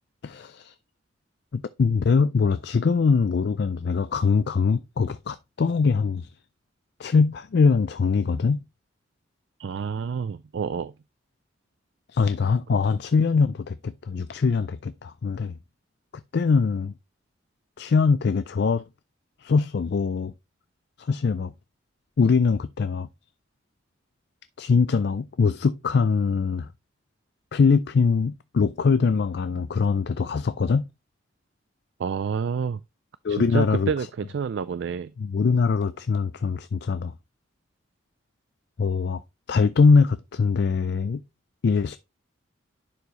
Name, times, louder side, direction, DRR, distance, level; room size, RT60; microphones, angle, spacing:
voice 1, 0.2-0.7 1.5-6.3 7.0-8.6 12.1-15.6 16.3-16.9 17.8-18.8 19.4-20.3 21.0-21.5 22.2-23.1 24.6-26.7 27.5-30.9 33.2-33.9 35.2-37.1 38.8-39.2 39.5-41.2 41.6-42.0, left 5 dB, 55° left, 0.4 m, -22 dB
voice 2, 9.6-10.9 32.0-32.8 33.3-35.1, right 6 dB, 60° right, 0.3 m, -28 dB
10.5 x 4.7 x 3.1 m
head